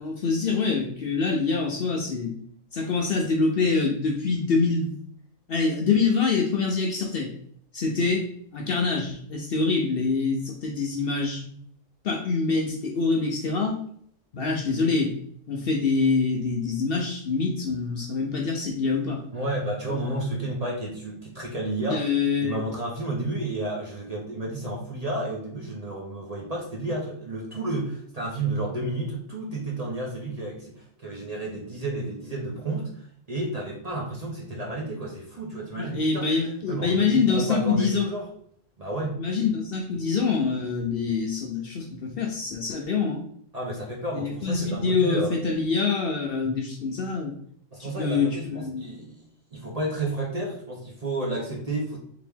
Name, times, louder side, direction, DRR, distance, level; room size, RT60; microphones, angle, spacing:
voice 1, 0.0-2.3 2.7-5.0 5.5-7.3 7.7-8.3 8.5-11.6 12.0-13.8 14.3-15.1 15.5-19.2 21.9-22.6 35.8-38.1 39.2-43.2 44.1-47.3 47.8-48.8, left 4 dB, 60° left, 0 dB, 0.7 m, -25 dB
voice 2, 19.3-22.1 22.4-36.3 36.7-38.3 38.8-39.2 43.5-45.4 47.7-49.2 49.5-52.0, right 2 dB, 35° right, -3 dB, 0.7 m, -31 dB
3.4 x 3.0 x 3.5 m, 0.64 s
omnidirectional pair, 1.3 m